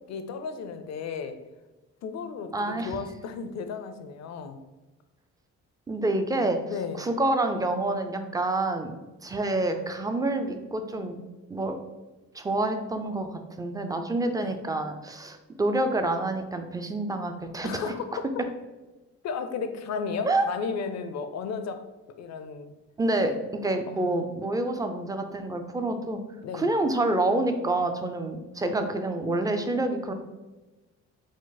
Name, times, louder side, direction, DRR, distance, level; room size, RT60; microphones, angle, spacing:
voice 1, 0.1-1.4 2.0-4.6 6.7-7.1 14.4-14.5 17.6-18.0 19.2-21.8 22.2-22.7 23.9-24.3 26.4-26.7, left 5 dB, 60° left, 8 dB, 0.5 m, -34 dB
voice 2, 2.5-3.0 5.9-6.6 7.0-8.9 9.2-11.2 11.5-11.8 12.3-17.8 20.2-20.5 23.0-26.2 26.5-30.1, right 2 dB, 10° right, 7 dB, 0.4 m, -27 dB
5.0 x 2.0 x 3.9 m, 1.1 s
cardioid pair, 90°, 30 cm